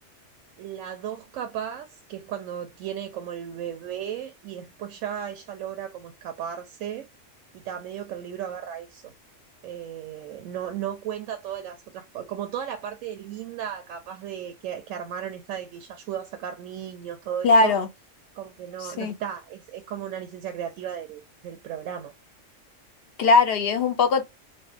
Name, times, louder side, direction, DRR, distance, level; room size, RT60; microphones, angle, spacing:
voice 1, 0.6-7.1 7.5-9.1 9.6-17.8 18.3-22.1, right 9 dB, 85° right, 1.0 m, -35 dB
voice 2, 17.4-17.9 19.0-19.1 23.2-24.2, left 3 dB, 60° left, 0.7 m, -19 dB
2.7 x 2.5 x 3.3 m
omnidirectional pair, 1.3 m